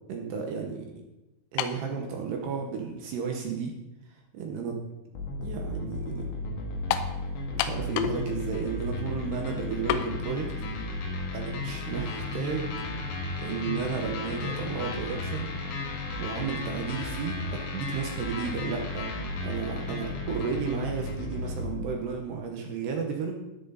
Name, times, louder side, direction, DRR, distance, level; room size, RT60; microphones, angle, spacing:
voice 1, 0.1-0.9 1.5-3.7 4.3-4.8 5.4-6.3 7.5-10.5 11.3-12.7 13.4-15.5 16.2-19.0 19.4-23.3, right 6 dB, 70° right, 2 dB, 2.7 m, -33 dB
sound 1, 1.6-1.9 2.8-2.9 6.9-7.2 7.6-8.2 8.5-8.6 9.9-10.1, left 11 dB, 85° left, 3.3 m, -29 dB
sound 2, 5.1-21.9, left 2 dB, 65° left, 3.6 m, -34 dB
13.0 x 9.9 x 4.0 m, 0.99 s
omnidirectional pair, 5.8 m